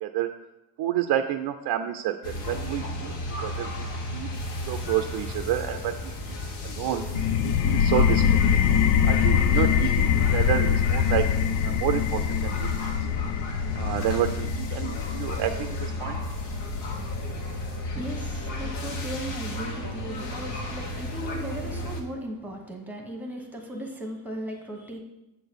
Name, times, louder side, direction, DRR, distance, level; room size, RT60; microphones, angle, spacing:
voice 1, 0.0-0.3 0.8-3.1 3.4-4.4 4.7-6.3 6.6-7.1 7.4-8.5 9.0-11.3 11.6-12.9 13.7-16.2, right 11 dB, 55° right, 6 dB, 0.6 m, -29 dB
sound 1, 2.2-22.0, left 1 dB, 60° left, 1.5 m, -34 dB
sound 2, 7.1-18.6, left 8 dB, 85° left, 0.7 m, -24 dB
voice 2, 17.8-25.0, right 1 dB, 5° right, 2 dB, 1.3 m, -37 dB
8.1 x 4.0 x 6.9 m, 0.96 s
cardioid pair, 140°, 45 cm